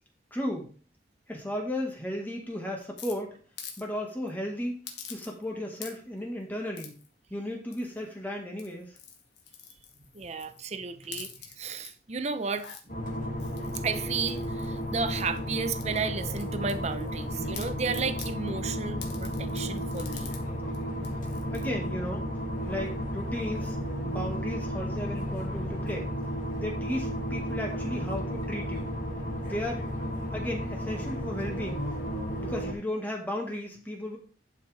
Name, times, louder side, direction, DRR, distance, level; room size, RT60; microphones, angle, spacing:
voice 1, 0.3-0.7 1.3-3.4 3.8-7.0 7.3-9.0 21.5-22.3 22.7-23.8 24.0-26.1 26.6-28.9 29.4-29.9 30.3-31.9 32.4-34.2, left 1 dB, 10° left, 1.8 m, -35 dB
sound 1, 3.0-3.8 4.1-4.3 4.8-5.5 5.7-6.2 6.7-7.1 7.7-8.1 8.5-10.6 11.0-11.9 12.3-12.8 13.4-15.4 15.8-17.2 17.5-18.3 19.0-20.4 20.7-20.8 21.0-21.7, left 7 dB, 75° left, 1.8 m, -45 dB
voice 2, 10.1-12.7 13.8-20.4, right 4 dB, 35° right, 0.7 m, -33 dB
sound 2, 12.9-32.7, equal, 50° left, 2.6 m, -33 dB
11.0 x 5.8 x 3.5 m
head